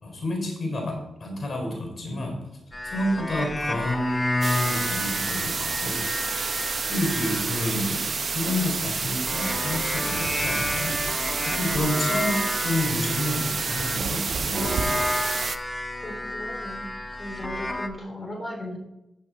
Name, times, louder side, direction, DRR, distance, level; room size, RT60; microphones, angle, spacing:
voice 1, 0.0-2.4 2.8-6.1 6.9-11.0 11.4-14.8, left 1 dB, 55° left, 1 dB, 4.5 m, -29 dB
sound 1, 2.7-14.1 14.5-17.9, left 1 dB, 15° left, 1.1 m, -32 dB
sound 2, 4.4-15.6, right 5 dB, 55° right, 0.7 m, -29 dB
sound 3, 10.0-15.0, right 4 dB, 90° right, 1.5 m, -36 dB
voice 2, 15.9-18.8, left 1 dB, 35° left, 2 dB, 3.6 m, -37 dB
13.5 x 6.9 x 4.2 m, 0.91 s
cardioid pair, 55°, 0 cm